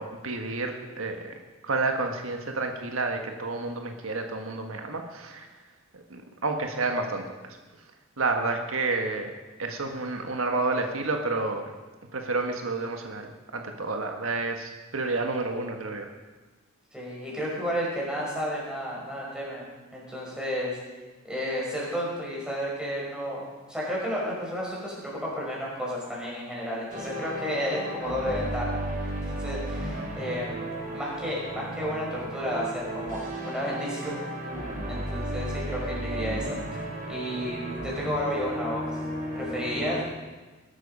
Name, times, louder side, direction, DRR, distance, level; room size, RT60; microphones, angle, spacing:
voice 1, 0.0-1.3 1.6-5.5 5.9-7.6 8.2-9.3 9.6-11.6 12.1-16.1, right 3 dB, 80° right, 4 dB, 1.6 m, -30 dB
voice 2, 16.9-19.6 19.9-20.8 21.2-23.4 23.7-28.8 29.2-30.6 30.9-34.2 34.9-36.5 37.1-39.0 39.3-40.0, equal, 5° right, -5 dB, 5.6 m, -32 dB
sound 1, 26.9-40.0, right 1 dB, 40° right, 3.7 m, -34 dB
20.5 x 12.5 x 5.5 m, 1.3 s
head